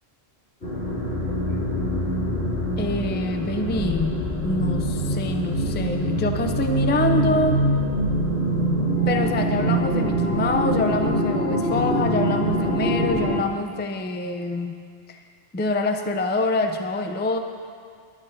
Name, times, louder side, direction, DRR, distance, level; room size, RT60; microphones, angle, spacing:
sound 1, 0.6-13.4, right 1 dB, 90° left, 3.5 m, -24 dB
voice 1, 2.8-7.6 9.1-14.8 15.1-15.2 15.5-17.4, left 2 dB, 15° left, 5 dB, 0.3 m, -26 dB
18.0 x 11.0 x 2.6 m, 2.1 s
omnidirectional pair, 1.1 m